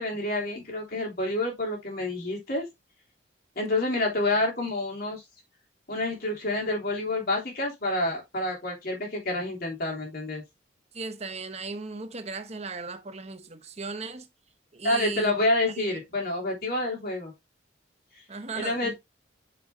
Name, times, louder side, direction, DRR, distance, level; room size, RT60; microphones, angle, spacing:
voice 1, 0.0-2.6 3.5-5.2 5.9-10.4 14.8-17.3 18.5-19.0, left 2 dB, 55° left, 3.4 m, -28 dB
voice 2, 10.9-14.3 14.7-15.3 15.7-16.0 18.3-18.9, right 4 dB, 35° right, 1.0 m, -36 dB
7.0 x 6.8 x 2.8 m
head